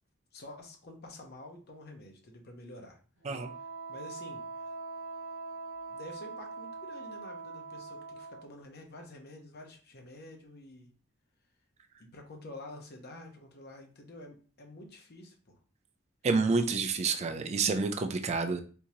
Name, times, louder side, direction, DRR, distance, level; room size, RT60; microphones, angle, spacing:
voice 1, 0.3-3.0 3.9-4.7 5.9-10.9 12.0-15.6, left 1 dB, 55° left, 3 dB, 0.8 m, -49 dB
Wind instrument woodwind instrument, 3.2-8.5, right 4 dB, 85° right, 0.7 m, -42 dB
voice 2, 16.2-18.6, right 4 dB, 35° right, 7 dB, 0.3 m, -28 dB
3.5 x 2.7 x 2.9 m, 0.38 s
head